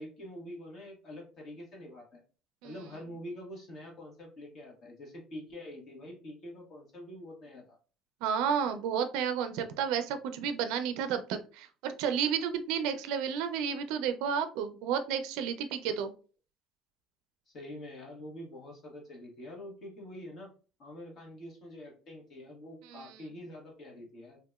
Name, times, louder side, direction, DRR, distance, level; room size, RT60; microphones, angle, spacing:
voice 1, 0.0-2.2 2.6-7.8 15.9-16.0 17.5-20.5 20.8-24.4, left 1 dB, 40° left, -1 dB, 1.3 m, -46 dB
voice 2, 8.2-16.1 22.9-23.2, right 7 dB, 85° right, 9 dB, 0.4 m, -31 dB
3.4 x 2.8 x 2.3 m, 0.36 s
cardioid pair, 160°, 0 cm